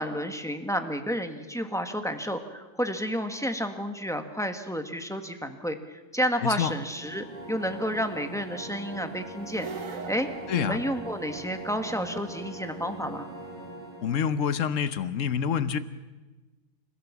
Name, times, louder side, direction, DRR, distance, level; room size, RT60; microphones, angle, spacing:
voice 1, 0.0-13.3, equal, ahead, 6 dB, 1.4 m, -31 dB
voice 2, 6.4-6.7 10.5-10.8 14.0-15.8, left 7 dB, 70° left, 13 dB, 1.3 m, -27 dB
sound 1, 6.7-14.4, right 1 dB, 40° right, 6.9 m, -41 dB
sound 2, 9.5-11.5, right 6 dB, 85° right, 1.6 m, -41 dB
28.5 x 15.5 x 7.3 m, 1.2 s
omnidirectional pair, 1.4 m